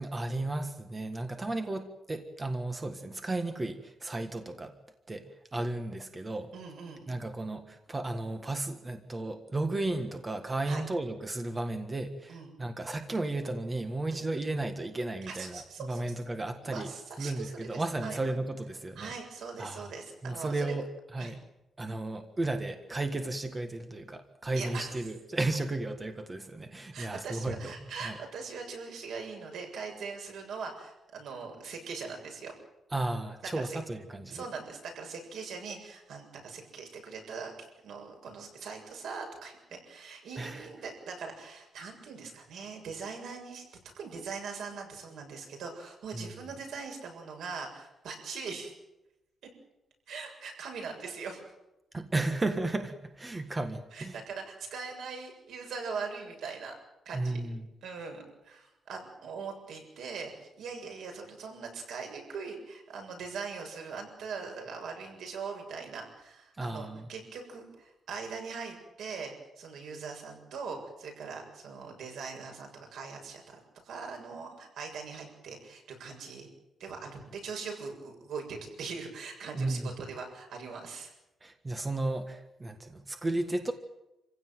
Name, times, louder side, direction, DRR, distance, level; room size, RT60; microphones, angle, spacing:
voice 1, 0.0-4.7 5.1-6.5 7.1-16.9 17.2-19.1 19.6-19.9 20.2-20.9 21.1-21.4 21.8-27.7 28.0-28.2 32.9-34.5 40.4-40.7 46.1-46.3 51.9-54.1 57.1-57.7 66.6-67.1 79.5-79.9 81.4-83.7, right 2 dB, 15° right, 7 dB, 1.6 m, -34 dB
voice 2, 6.5-7.1 10.6-10.8 12.3-12.5 14.1-14.3 15.3-16.1 16.6-18.2 19.0-20.7 21.2-21.3 24.5-24.9 26.9-32.5 33.5-33.8 34.3-37.5 37.8-43.6 44.0-48.7 50.1-51.4 53.9-56.7 57.1-57.4 57.8-76.5 76.8-81.1, right 5 dB, 90° right, 3 dB, 7.3 m, -41 dB
27.5 x 16.0 x 9.4 m, 0.92 s
wide cardioid pair, 180°, 0 cm